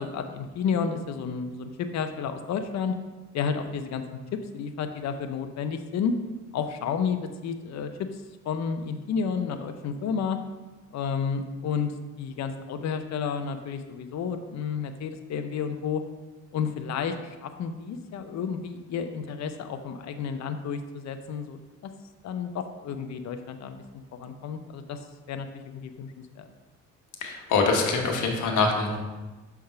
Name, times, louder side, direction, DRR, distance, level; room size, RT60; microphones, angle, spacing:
voice 1, 0.0-2.9 3.3-4.0 4.3-6.1 6.5-7.9 8.4-10.4 10.9-11.9 12.2-16.0 16.5-21.6 21.8-21.9 22.2-23.8 24.1-25.0 25.3-25.5 25.7-26.5, left 6 dB, 60° left, 7 dB, 0.7 m, -31 dB
voice 2, 27.2-29.0, left 4 dB, 80° left, 2 dB, 1.2 m, -24 dB
6.5 x 3.5 x 5.8 m, 1.2 s
cardioid pair, 90°, 30 cm